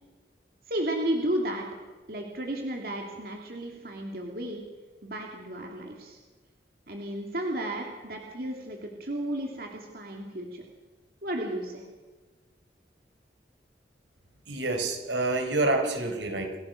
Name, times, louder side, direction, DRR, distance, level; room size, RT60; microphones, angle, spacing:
voice 1, 0.7-1.7 2.1-4.6 5.0-6.2 6.9-10.6 11.2-11.8, right 1 dB, 55° right, 1 dB, 2.8 m, -33 dB
voice 2, 14.5-16.6, right 2 dB, 85° right, 5 dB, 4.4 m, -27 dB
27.5 x 16.5 x 6.6 m, 1.3 s
head